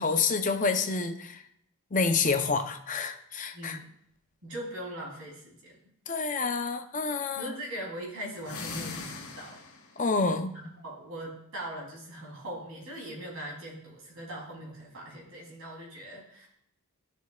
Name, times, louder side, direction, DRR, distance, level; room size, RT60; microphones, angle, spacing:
voice 1, 0.0-1.4 1.9-3.8 6.1-7.5 10.0-10.5, left 4 dB, 35° left, 7 dB, 0.6 m, -28 dB
voice 2, 3.5-3.9 4.4-5.8 7.3-9.6 10.5-16.5, right 1 dB, 70° right, -2 dB, 3.2 m, -40 dB
sound 1, 8.4-10.0, left 4 dB, 85° left, 1.3 m, -40 dB
14.0 x 6.3 x 2.4 m, 0.71 s
head